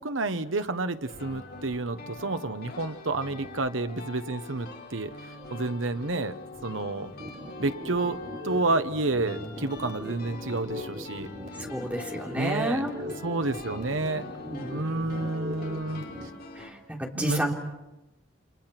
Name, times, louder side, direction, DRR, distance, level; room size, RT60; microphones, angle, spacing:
voice 1, 0.0-5.1 5.5-7.1 7.6-11.3 12.4-14.2 14.7-16.0 17.1-17.5, right 2 dB, 85° right, 10 dB, 1.2 m, -30 dB
sound 1, 1.1-16.7, left 2 dB, 50° left, 4.1 m, -43 dB
sound 2, 7.2-16.3, left 1 dB, 40° right, 4.3 m, -40 dB
voice 2, 11.7-12.9 14.5-15.2 16.6-17.5, equal, 10° right, 0 dB, 3.5 m, -31 dB
30.0 x 27.0 x 6.0 m, 0.99 s
head